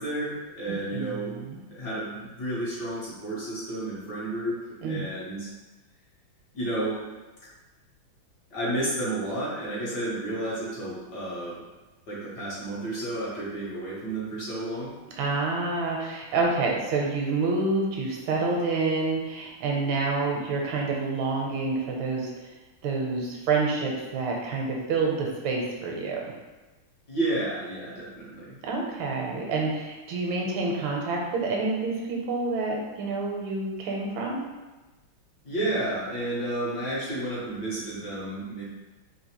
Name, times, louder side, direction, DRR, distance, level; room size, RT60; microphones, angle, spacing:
voice 1, 0.0-1.4 1.7-4.6 4.9-5.5 6.5-7.0 8.5-11.6 12.1-14.9 27.1-28.5 35.4-38.7, right 1 dB, 60° left, -8 dB, 1.6 m, -31 dB
voice 2, 0.7-1.6 4.8-5.0 15.2-22.3 22.8-26.3 28.6-34.4, right 3 dB, 80° right, -1 dB, 1.4 m, -28 dB
3.9 x 2.7 x 2.9 m, 1.2 s
omnidirectional pair, 2.3 m